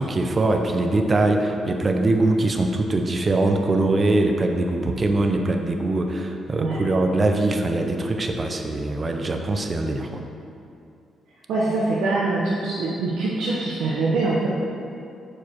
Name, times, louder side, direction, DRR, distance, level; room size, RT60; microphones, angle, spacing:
voice 1, 0.0-10.2, right 2 dB, 35° right, 4 dB, 0.7 m, -22 dB
voice 2, 6.5-6.9 11.5-14.5, right 3 dB, 80° right, -6 dB, 0.9 m, -24 dB
6.6 x 4.8 x 4.5 m, 2.6 s
cardioid pair, 70°, 0 cm